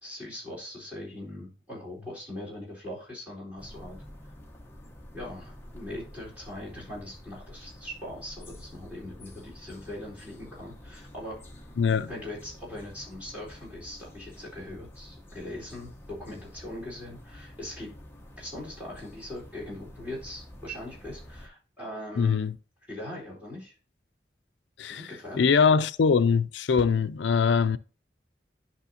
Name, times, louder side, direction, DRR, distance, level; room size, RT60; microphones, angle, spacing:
voice 1, 0.0-4.0 5.1-11.4 12.1-17.9 18.4-22.5 22.9-23.8 24.8-25.5, left 1 dB, 10° right, 3.9 m, -41 dB
sound 1, 3.6-21.5, left 1 dB, 15° left, 1.0 m, -48 dB
voice 2, 11.8-12.1 22.2-22.5 24.8-25.0 25.4-27.8, left 5 dB, 90° left, 0.4 m, -22 dB
10.5 x 5.9 x 2.7 m
head